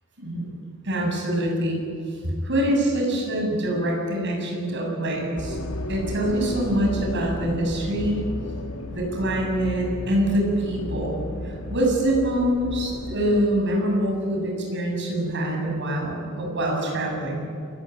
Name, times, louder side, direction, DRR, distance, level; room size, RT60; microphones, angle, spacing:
voice 1, 0.2-0.5 0.8-1.8 2.4-5.6 5.9-8.2 8.9-17.4, right 1 dB, 60° right, -1 dB, 7.5 m, -25 dB
sound 1, 5.4-13.4, left 1 dB, 85° left, 1.9 m, -34 dB
27.0 x 16.5 x 9.2 m, 2.6 s
head